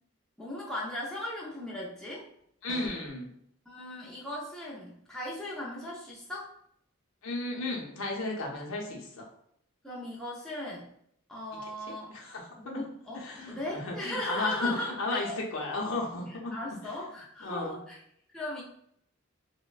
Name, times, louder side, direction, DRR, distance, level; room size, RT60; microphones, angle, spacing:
voice 1, 0.4-2.3 3.7-6.5 9.8-10.9 11.3-12.1 12.6-15.4 16.3-18.0 18.3-18.6, left 1 dB, 5° left, -6 dB, 0.4 m, -37 dB
voice 2, 2.6-3.3 7.2-9.2 12.1-12.8 13.1-16.8 17.4-17.8, left 2 dB, 75° left, -1 dB, 0.6 m, -34 dB
sound 1, 2.7-3.2, equal, 65° right, 0.5 m, -46 dB
3.0 x 2.1 x 2.4 m, 0.70 s
head